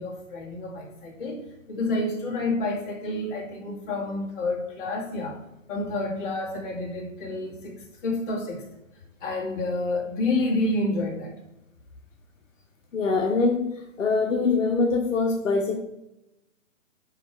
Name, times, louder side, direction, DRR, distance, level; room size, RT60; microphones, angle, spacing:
voice 1, 0.0-5.4 5.7-8.6 9.2-11.3, left 2 dB, 40° left, -2 dB, 2.3 m, -29 dB
voice 2, 12.9-13.6 14.0-15.8, left 4 dB, 75° left, 1 dB, 1.2 m, -23 dB
9.3 x 3.3 x 4.9 m, 0.89 s
hypercardioid pair, 145°, 39 cm